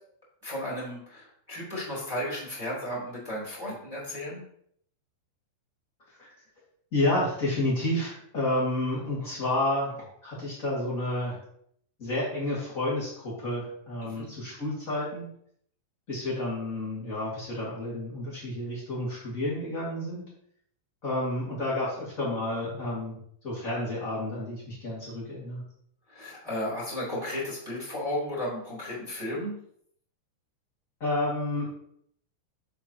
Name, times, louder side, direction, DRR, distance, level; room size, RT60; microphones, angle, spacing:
voice 1, 0.4-4.4 14.0-14.2 26.1-29.6, left 1 dB, 5° right, -7 dB, 2.0 m, -34 dB
voice 2, 6.9-9.9 10.2-11.4 12.0-15.3 16.1-20.2 21.0-23.2 23.4-25.6 31.0-31.7, left 1 dB, 50° left, -7 dB, 0.9 m, -30 dB
7.3 x 7.0 x 2.9 m, 0.66 s
omnidirectional pair, 5.4 m